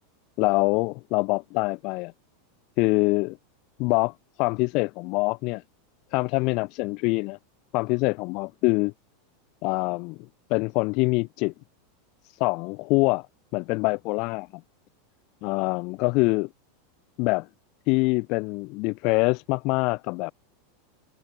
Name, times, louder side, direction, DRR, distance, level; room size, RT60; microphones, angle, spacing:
voice 1, 0.4-2.1 2.8-3.4 3.8-5.6 6.1-7.4 7.7-8.9 9.6-11.5 12.4-13.3 13.5-14.5 15.4-16.5 17.2-17.5 17.9-20.3, left 27 dB, 50° left, 7.9 m, -25 dB
supercardioid pair, 140°, 0 cm